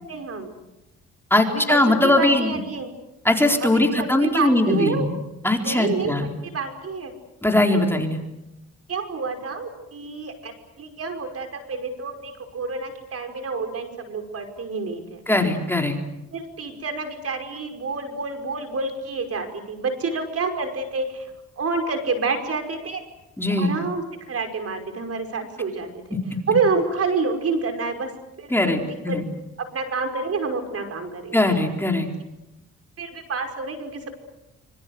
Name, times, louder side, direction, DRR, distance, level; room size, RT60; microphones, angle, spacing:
voice 1, 0.1-0.5 1.5-1.8 2.0-2.9 3.6-5.1 5.6-6.1 6.5-7.1 7.9-8.0 8.9-15.2 16.3-21.3 21.6-23.0 23.6-26.2 26.5-28.1 28.4-29.2 29.7-31.4 33.0-34.2, right 4 dB, 50° right, 6 dB, 5.5 m, -28 dB
voice 2, 1.3-2.6 3.2-5.1 5.4-6.3 7.4-8.2 15.3-16.0 23.4-23.7 26.1-26.2 28.5-29.3 31.3-32.1, left 1 dB, 5° left, 2 dB, 4.3 m, -20 dB
26.0 x 25.5 x 8.0 m, 0.93 s
cardioid pair, 90°, 30 cm